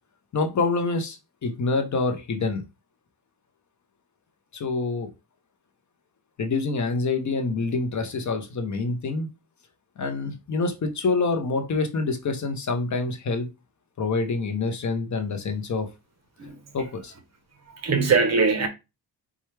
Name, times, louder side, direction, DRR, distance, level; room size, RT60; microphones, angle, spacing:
voice 1, 0.3-2.6 4.5-5.1 6.4-9.3 10.0-13.5 14.0-15.9 16.7-17.1, left 3 dB, 45° left, 0.7 m, -26 dB
voice 2, 17.7-18.7, right 4 dB, 40° right, 0.8 m, -21 dB
4.4 x 2.3 x 3.1 m
cardioid pair, 120°, 42 cm